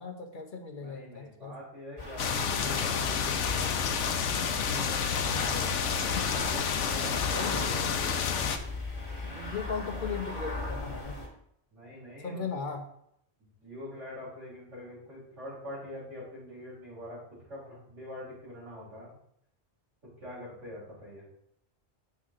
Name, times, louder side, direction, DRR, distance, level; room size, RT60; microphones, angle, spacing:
voice 1, 0.0-1.6 5.2-5.7 7.3-7.7 9.2-11.2 12.2-12.8, left 5 dB, 45° left, 4 dB, 1.0 m, -37 dB
voice 2, 0.8-3.7 4.4-8.1 11.7-12.6 13.4-17.2 17.5-19.1 20.2-21.2, left 1 dB, 85° right, -11 dB, 3.7 m, -44 dB
sound 1, 2.0-11.3, left 2 dB, 25° left, 1.8 m, -38 dB
sound 2, 2.2-8.6, left 7 dB, 80° left, 1.0 m, -29 dB
8.1 x 5.7 x 3.7 m, 0.72 s
omnidirectional pair, 1.2 m